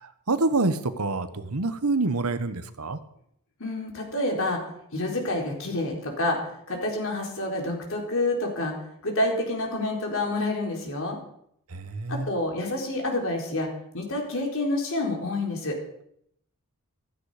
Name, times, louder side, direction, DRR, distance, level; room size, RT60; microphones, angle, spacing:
voice 1, 0.0-3.0 11.7-12.3, right 3 dB, 85° right, 11 dB, 1.2 m, -27 dB
voice 2, 3.6-4.6 4.9-6.4 6.7-8.7 9.0-11.2 12.1-13.7 13.9-15.8, left 2 dB, 65° left, 1 dB, 4.0 m, -28 dB
15.0 x 14.0 x 5.0 m, 0.72 s
head